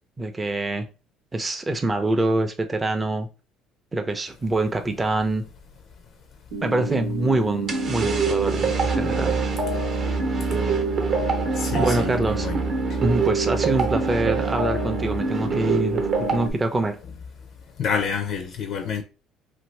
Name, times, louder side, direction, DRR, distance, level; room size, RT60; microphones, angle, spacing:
voice 1, 0.2-0.9 1.3-3.3 3.9-5.5 6.6-9.4 11.7-12.5 13.0-17.0, right 2 dB, 15° right, 0.5 m, -25 dB
sound 1, 6.5-16.5, right 2 dB, 80° right, 0.9 m, -32 dB
sound 2, 7.7-16.5, right 4 dB, 45° right, 0.8 m, -25 dB
voice 2, 11.5-12.6 12.9-13.0 17.8-19.0, left 6 dB, 55° left, 0.4 m, -28 dB
2.6 x 2.6 x 3.2 m
cardioid pair, 125°, 0 cm